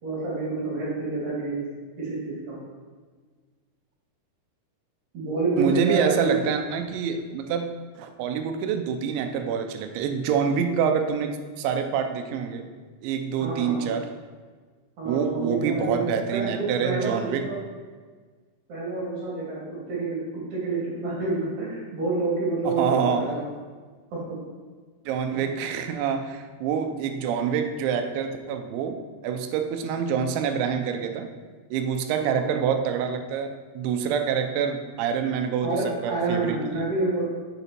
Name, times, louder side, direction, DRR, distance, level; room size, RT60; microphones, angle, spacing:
voice 1, 0.0-1.7 2.0-2.6 5.1-6.4 13.4-13.9 15.0-17.6 18.7-23.4 24.1-24.2 32.1-32.7 35.6-37.3, right 3 dB, 50° right, -6 dB, 3.2 m, -28 dB
voice 2, 5.6-7.7 8.0-12.7 13.0-14.1 15.1-17.5 22.6-23.2 25.1-31.3 31.7-35.7 36.0-36.8, right 7 dB, 85° right, 6 dB, 3.0 m, -26 dB
7.0 x 6.8 x 4.4 m, 1.5 s
omnidirectional pair, 5.2 m